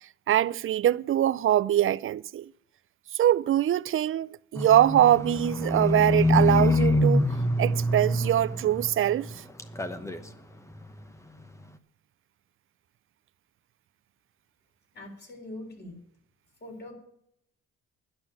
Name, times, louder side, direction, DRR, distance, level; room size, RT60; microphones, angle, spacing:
voice 1, 0.3-2.5 3.2-7.3 7.6-9.3, right 12 dB, 45° right, 0.4 m, -23 dB
Livestock farm animals working animals, 4.5-9.3 9.6-10.3 10.7-10.9, left 1 dB, 10° left, 0.9 m, -25 dB
voice 2, 14.9-16.0 16.6-16.9, left 1 dB, 35° left, 3.7 m, -42 dB
11.0 x 6.0 x 8.8 m
cardioid pair, 90°, 30 cm